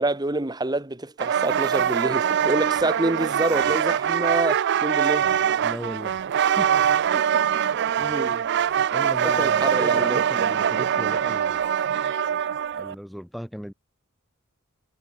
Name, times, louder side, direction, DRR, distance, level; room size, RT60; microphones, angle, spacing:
voice 1, 0.0-5.3 8.0-8.4 9.4-10.2, right 2 dB, 20° right, 1.2 m, -27 dB
sound 1, 1.2-12.9, right 8 dB, 55° right, 0.4 m, -23 dB
voice 2, 5.6-6.2 6.6-6.7 7.1-7.4 8.9-11.6 12.7-13.7, equal, ahead, 6.9 m, -36 dB
head